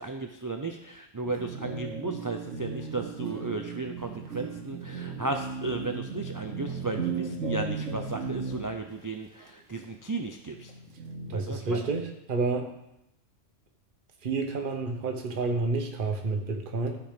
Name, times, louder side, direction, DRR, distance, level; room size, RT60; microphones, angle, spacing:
voice 1, 0.0-10.7 11.3-11.9, right 3 dB, 30° right, 4 dB, 0.3 m, -35 dB
sound 1, 1.2-8.9 9.9-10.0 10.4-11.5, right 4 dB, 85° right, 1.6 m, -36 dB
voice 2, 11.3-12.7 14.2-17.0, right 3 dB, 45° right, 3 dB, 1.2 m, -29 dB
13.5 x 5.0 x 5.1 m, 0.87 s
omnidirectional pair, 1.3 m